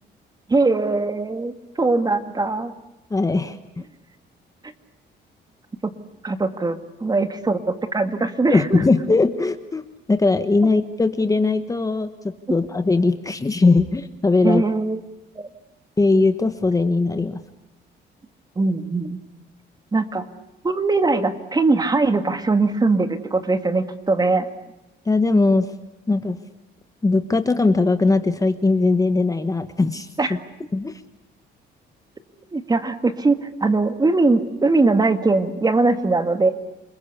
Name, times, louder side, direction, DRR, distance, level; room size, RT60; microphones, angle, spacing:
voice 1, 0.5-2.7 5.8-5.9 6.2-8.8 14.4-15.0 15.4-15.5 18.6-19.2 19.9-20.3 20.6-24.5 30.2-30.4 32.5-36.5, right 3 dB, 20° right, 9 dB, 2.0 m, -21 dB
voice 2, 3.1-3.6 8.5-14.6 16.0-17.4 25.0-25.7 26.1-26.4 27.0-30.1 30.7-30.9, left 3 dB, 15° left, 9 dB, 1.3 m, -20 dB
28.5 x 21.0 x 8.3 m, 0.94 s
cardioid pair, 120°, 19 cm